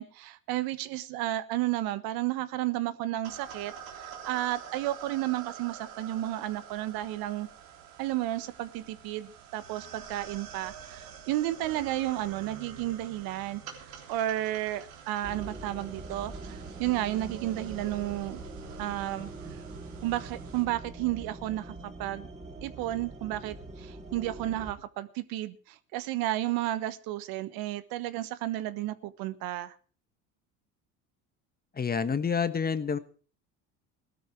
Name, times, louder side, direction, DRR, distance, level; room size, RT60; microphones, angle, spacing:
voice 1, 0.0-7.5 8.0-18.4 18.8-19.6 20.0-22.3 22.6-29.7, right 15 dB, 65° right, 14 dB, 1.3 m, -32 dB
sound 1, 3.2-20.6, right 7 dB, 85° right, 3.4 m, -46 dB
sound 2, 15.2-24.7, right 3 dB, 20° right, 3.8 m, -44 dB
voice 2, 31.7-33.0, left 6 dB, 25° left, 12 dB, 1.4 m, -28 dB
17.5 x 12.5 x 4.7 m, 0.40 s
supercardioid pair, 85°, 38 cm